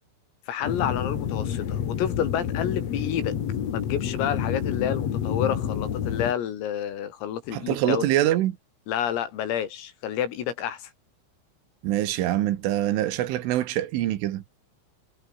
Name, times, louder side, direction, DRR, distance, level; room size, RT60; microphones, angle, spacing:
voice 1, 0.5-3.3 3.7-8.1 8.9-10.9, left 10 dB, 85° left, 5.8 m, -29 dB
sound 1, 0.6-6.3, left 9 dB, 60° left, 1.8 m, -29 dB
voice 2, 7.5-8.6 11.8-14.4, right 14 dB, 75° right, 3.9 m, -24 dB
omnidirectional pair, 5.9 m